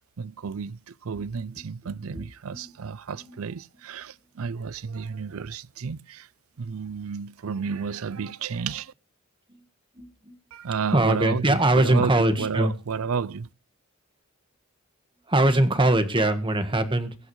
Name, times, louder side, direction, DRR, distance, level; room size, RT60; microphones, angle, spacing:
voice 1, 0.2-6.3 6.6-8.9 10.5-13.5, right 6 dB, 80° right, 0.5 m, -32 dB
voice 2, 10.0-10.3 10.9-12.7 15.3-17.1, right 1 dB, 25° right, 1.5 m, -22 dB
22.5 x 8.5 x 3.1 m
head